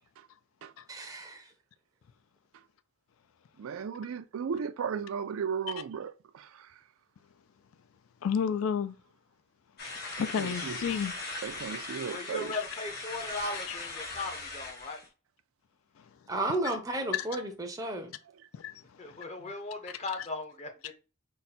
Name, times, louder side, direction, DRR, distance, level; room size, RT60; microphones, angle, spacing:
voice 1, 0.9-1.4 16.3-18.1, right 2 dB, 15° right, 0.5 m, -33 dB
voice 2, 3.6-6.7 10.2-10.8 11.4-12.5, right 6 dB, 80° right, 0.4 m, -36 dB
voice 3, 8.2-9.0 10.2-11.1 13.7-13.8 16.0-16.1 16.6-16.8 17.1-17.3 18.5-19.2, left 7 dB, 80° left, 0.4 m, -31 dB
sound 1, 9.8-15.1, left 3 dB, 50° left, 1.3 m, -39 dB
voice 4, 12.1-15.0 19.0-20.9, left 2 dB, 30° left, 0.7 m, -38 dB
3.9 x 2.2 x 4.1 m
head